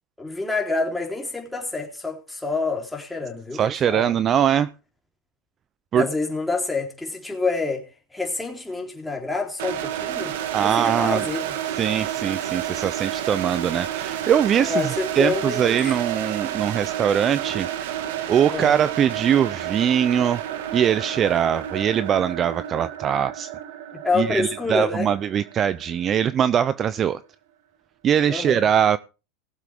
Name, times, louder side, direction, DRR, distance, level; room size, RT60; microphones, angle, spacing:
voice 1, 0.2-4.1 5.9-7.8 8.1-10.3 10.6-11.5 14.6-16.0 18.5-18.7 23.9-25.1 28.3-28.6, left 3 dB, 5° left, 3.4 m, -27 dB
voice 2, 3.5-4.7 5.9-6.1 10.5-11.2 11.8-18.0 18.3-20.4 20.7-23.5 24.1-27.2 28.0-29.0, right 9 dB, 30° right, 0.5 m, -22 dB
sound 1, 9.6-26.4, right 11 dB, 70° right, 1.5 m, -30 dB
20.0 x 7.4 x 3.4 m
supercardioid pair, 125°, 0 cm